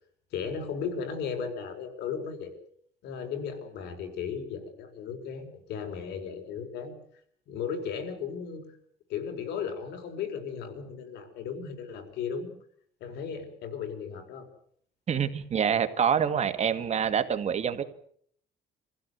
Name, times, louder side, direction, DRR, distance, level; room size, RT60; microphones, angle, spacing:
voice 1, 0.3-2.5 3.0-6.9 7.5-8.6 9.1-12.5 13.0-14.5, left 6 dB, 80° left, 6 dB, 4.7 m, -35 dB
voice 2, 15.1-17.8, right 7 dB, 40° right, 9 dB, 1.8 m, -26 dB
26.0 x 16.0 x 8.0 m, 0.65 s
cardioid pair, 110°, 17 cm